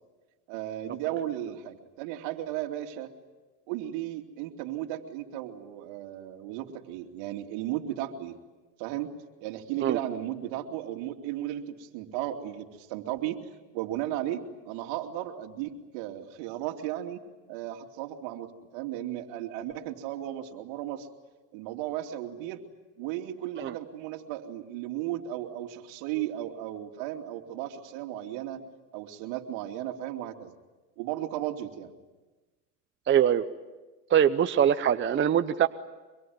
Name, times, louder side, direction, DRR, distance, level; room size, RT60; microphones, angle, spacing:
voice 1, 0.5-3.1 3.7-8.4 8.8-9.1 9.4-13.4 13.7-17.2 17.5-18.5 18.7-21.1 21.5-22.6 23.0-28.6 28.9-30.5 31.0-31.9, right 12 dB, 60° right, 4 dB, 2.9 m, -35 dB
voice 2, 33.1-33.4 34.1-35.7, right 9 dB, 25° right, 9 dB, 0.8 m, -23 dB
25.0 x 22.5 x 9.5 m, 1.2 s
supercardioid pair, 120°, 49 cm